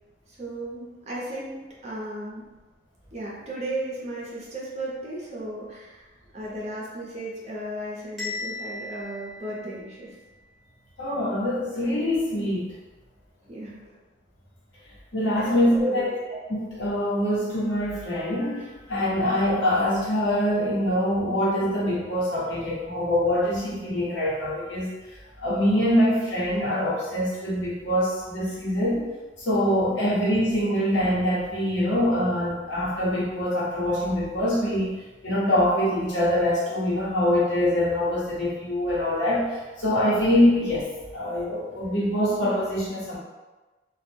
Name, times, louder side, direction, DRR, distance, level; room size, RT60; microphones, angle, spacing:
voice 1, 0.3-2.5 3.1-10.1 13.5-14.0 15.4-16.1, right 1 dB, 35° right, -5 dB, 0.7 m, -35 dB
Bell, 8.2-10.2, left 3 dB, ahead, 0.8 m, -37 dB
voice 2, 11.0-12.7 15.1-16.1 16.5-24.9 25.4-29.1 29.4-35.0 35.2-40.9 41.1-43.2, left 1 dB, 90° left, -7 dB, 1.0 m, -24 dB
2.4 x 2.1 x 3.3 m, 1.2 s
head